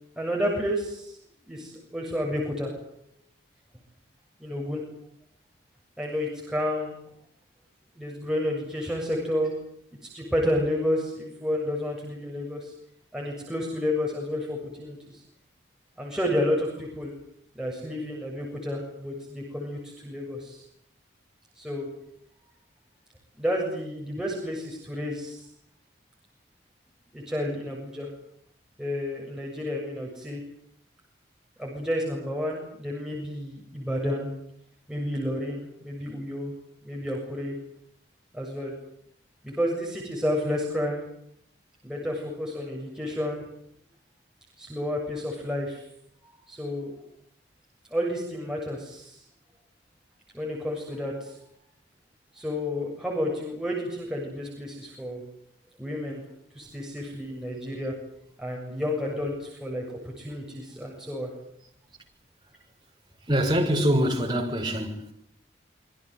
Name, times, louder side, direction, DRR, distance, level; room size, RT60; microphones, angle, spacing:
voice 1, 0.2-1.2 1.5-2.7 4.4-4.8 6.0-7.0 8.0-9.5 10.1-12.7 13.1-15.2 16.0-17.1 17.6-20.6 21.6-21.9 23.4-25.5 27.1-28.1 28.8-30.4 31.6-34.3 34.9-36.6 36.8-37.6 38.3-38.7 39.4-41.0 41.8-43.4 44.6-45.8 46.2-46.9 47.9-49.2 50.3-51.4 52.3-55.2 55.8-56.2 56.5-58.0 58.4-61.3, left 1 dB, 5° right, 7.3 m, -30 dB
voice 2, 63.3-65.1, equal, 25° right, 6.4 m, -24 dB
26.5 x 24.5 x 8.1 m
head